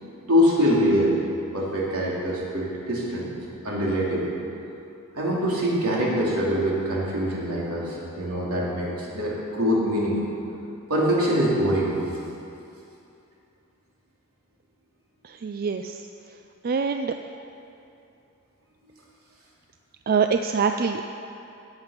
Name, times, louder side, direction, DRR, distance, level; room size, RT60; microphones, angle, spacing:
voice 1, 0.0-1.2 1.5-3.3 3.6-4.3 5.1-10.4 10.9-12.0, equal, 75° right, -5 dB, 3.3 m, -24 dB
voice 2, 15.2-16.0 16.6-17.1 20.1-21.0, right 5 dB, 45° right, 6 dB, 0.4 m, -24 dB
17.5 x 7.8 x 5.9 m, 2.7 s
head